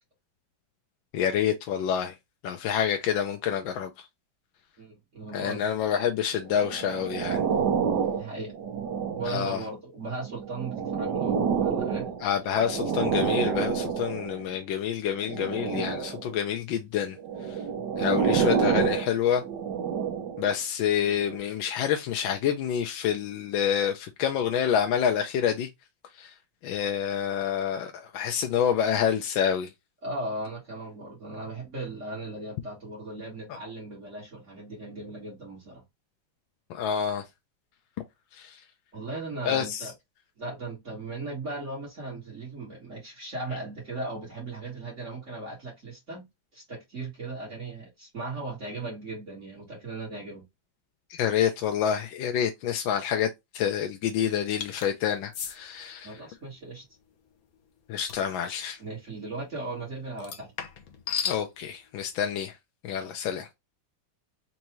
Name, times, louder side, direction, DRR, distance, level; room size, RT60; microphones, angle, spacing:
voice 1, 1.1-2.1 2.4-4.1 5.3-7.4 9.3-9.6 12.2-17.2 18.0-19.4 20.4-25.7 26.2-26.3 26.6-29.7 36.7-37.2 38.3-38.6 39.4-39.9 51.1-53.3 53.5-56.1 57.9-58.8 61.2-62.5 62.8-63.5, left 8 dB, 80° left, 1.4 m, -27 dB
voice 2, 4.8-5.6 8.1-8.5 9.2-12.2 30.0-35.8 38.9-39.9 40.4-46.3 46.5-50.5 56.0-56.8 58.8-60.5 63.0-63.4, right 2 dB, 40° right, 2.0 m, -37 dB
sound 1, 6.5-9.6 10.2-14.5 15.2-16.3 17.2-20.5 21.2-21.4, right 7 dB, 65° right, 1.3 m, -28 dB
sound 2, 54.6-54.9 55.3-55.6 58.1-58.3 60.2-61.4, left 7 dB, 60° left, 1.1 m, -33 dB
4.6 x 2.7 x 3.0 m
omnidirectional pair, 2.1 m